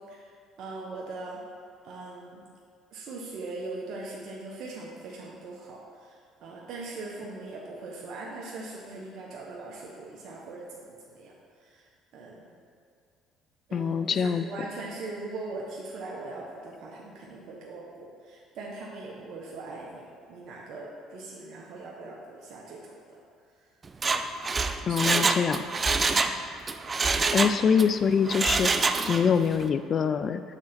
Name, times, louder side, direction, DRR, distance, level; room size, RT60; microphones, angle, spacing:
voice 1, 0.6-1.4 1.8-2.4 2.9-11.3 11.6-11.9 12.1-12.5 13.7-23.2 24.9-25.2 26.0-26.3, right 3 dB, 65° right, -3 dB, 0.9 m, -40 dB
voice 2, 13.7-14.4 24.8-25.6 27.3-30.4, left 6 dB, 45° left, 11 dB, 0.4 m, -24 dB
Mechanisms, 23.9-26.4 26.7-27.9 28.3-29.3 29.6-29.7, right 4 dB, 30° right, 0.4 m, -26 dB
6.2 x 3.8 x 5.8 m, 2.3 s
supercardioid pair, 85°, 0 cm